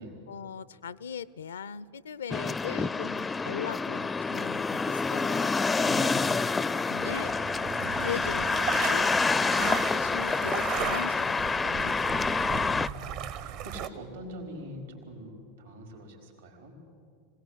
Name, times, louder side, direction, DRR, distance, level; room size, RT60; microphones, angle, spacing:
voice 1, 0.3-5.6 6.9-7.3 8.0-8.5 8.9-9.1 9.6-11.4 11.7-11.9, left 7 dB, 75° left, 20 dB, 0.5 m, -39 dB
sound 1, 2.3-12.9, left 4 dB, 15° left, 0.4 m, -28 dB
voice 2, 5.8-6.8 7.6-8.4 12.2-15.3 15.6-16.7, equal, 80° right, 3 dB, 4.8 m, -43 dB
sound 2, 7.0-13.9, right 10 dB, 55° right, 1.1 m, -36 dB
25.0 x 18.0 x 8.2 m, 2.5 s
figure-of-eight pair, 85°, 0 cm